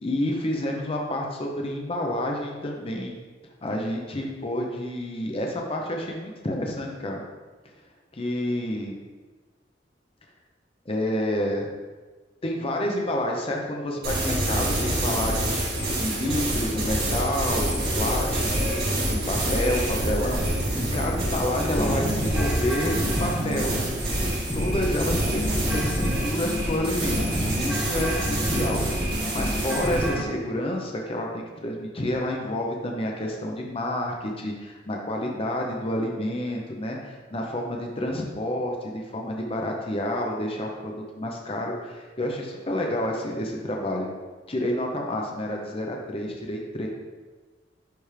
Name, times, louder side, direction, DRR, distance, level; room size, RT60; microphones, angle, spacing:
voice 1, 0.0-3.1 3.6-7.2 8.1-8.9 10.9-11.7 12.4-15.6 15.9-20.4 20.8-23.8 24.5-28.9 29.3-44.1 44.5-46.9, left 1 dB, 30° left, 0 dB, 0.7 m, -29 dB
sound 1, 14.0-30.1, right 1 dB, 60° right, 2.1 m, -27 dB
sound 2, 21.2-30.3, equal, 5° right, 0.7 m, -31 dB
10.5 x 3.4 x 3.3 m, 1.3 s
head